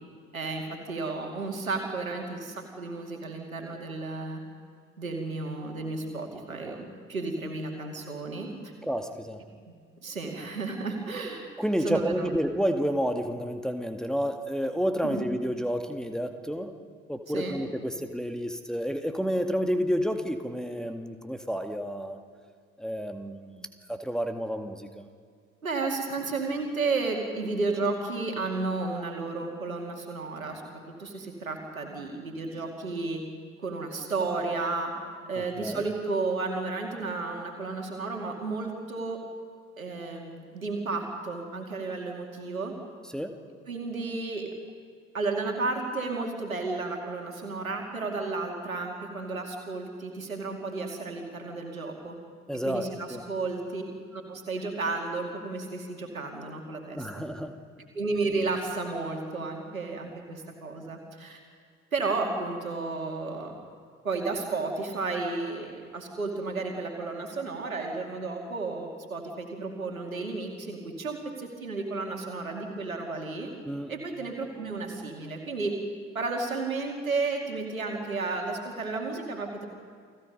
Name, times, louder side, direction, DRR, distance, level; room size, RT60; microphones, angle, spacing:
voice 1, 0.3-4.4 5.0-8.7 9.7-9.8 10.0-11.4 11.8-12.4 15.0-15.3 17.3-17.5 25.6-30.6 31.0-33.2 33.6-34.9 35.3-39.2 39.8-42.7 43.7-44.5 45.1-52.2 52.6-53.8 54.1-57.1 57.9-61.4 61.9-63.6 64.0-73.5 73.9-75.8 76.1-79.6, right 3 dB, 85° right, 2 dB, 2.4 m, -32 dB
voice 2, 8.8-9.4 11.6-16.7 17.1-22.2 22.8-25.1 35.4-35.8 43.1-43.4 52.5-53.2 57.0-57.6 73.7-73.9, equal, ahead, 5 dB, 1.9 m, -30 dB
29.5 x 19.5 x 5.4 m, 2.1 s
figure-of-eight pair, 50°, 40 cm